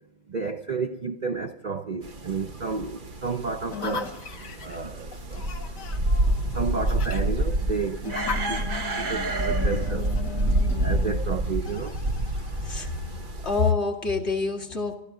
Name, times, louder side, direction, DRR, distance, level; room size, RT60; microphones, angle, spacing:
voice 1, 0.3-4.1 4.6-5.4 6.5-8.2 8.5-8.7 9.0-10.1 10.8-12.0, right 5 dB, 65° right, 0.4 m, -31 dB
sound 1, 2.0-13.7, right 1 dB, 35° right, 0.9 m, -28 dB
sound 2, 3.7-13.3, left 6 dB, 80° left, 2.0 m, -38 dB
voice 2, 12.6-12.9 13.4-14.9, left 4 dB, 40° left, 2.2 m, -26 dB
28.0 x 12.5 x 3.8 m
omnidirectional pair, 1.8 m